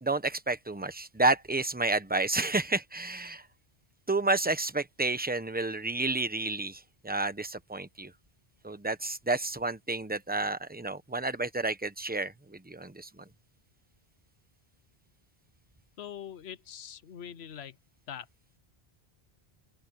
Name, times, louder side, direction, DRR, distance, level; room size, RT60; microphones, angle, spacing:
voice 1, 0.0-3.5 4.1-8.1 8.6-13.2, right 2 dB, 10° right, 0.9 m, -30 dB
voice 2, 16.0-17.7 18.1-18.3, left 9 dB, 85° left, 1.0 m, -43 dB
open air
omnidirectional pair, 1.0 m